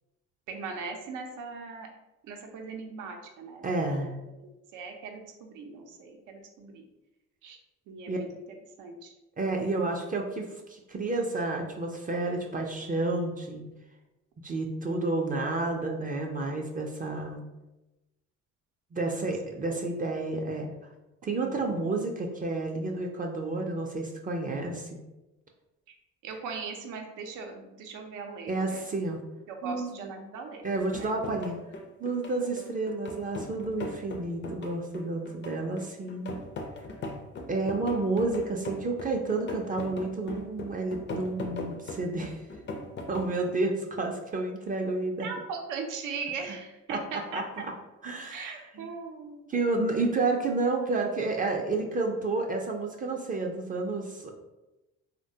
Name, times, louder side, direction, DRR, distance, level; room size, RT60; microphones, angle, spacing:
voice 1, 0.5-1.9 2.2-4.1 4.4-6.9 7.4-7.6 7.9-8.4 8.8-9.1 19.6-19.7 21.4-21.8 25.9-26.0 26.2-28.8 29.5-31.1 45.2-47.7 48.3-49.5, right 4 dB, 90° right, 3 dB, 0.5 m, -39 dB
voice 2, 3.6-4.2 8.1-8.2 9.4-13.7 14.4-17.4 18.9-20.7 21.2-25.0 28.5-29.2 29.6-29.9 30.6-31.6 32.0-36.4 37.5-42.4 43.1-45.3 46.9-47.0 47.3-47.4 48.0-48.9 49.5-54.3, right 3 dB, 30° right, 1 dB, 0.4 m, -30 dB
sound 1, 30.7-43.3, left 2 dB, 40° left, 0.4 m, -39 dB
3.0 x 2.1 x 2.7 m, 1.0 s
cardioid pair, 90°, 30 cm